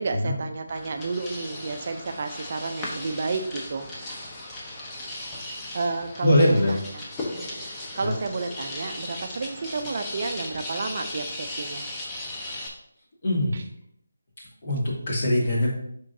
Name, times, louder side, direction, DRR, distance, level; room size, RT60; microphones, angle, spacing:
voice 1, 0.0-3.9 5.5-11.9 13.5-13.6, right 3 dB, 45° right, 6 dB, 0.5 m, -31 dB
sound 1, 0.7-12.7, left 1 dB, 15° left, 0.9 m, -37 dB
voice 2, 6.2-6.7 8.0-8.1 13.2-13.5 14.6-15.7, left 1 dB, 45° left, -5 dB, 2.4 m, -22 dB
9.7 x 3.7 x 2.7 m, 0.73 s
figure-of-eight pair, 160°, 0 cm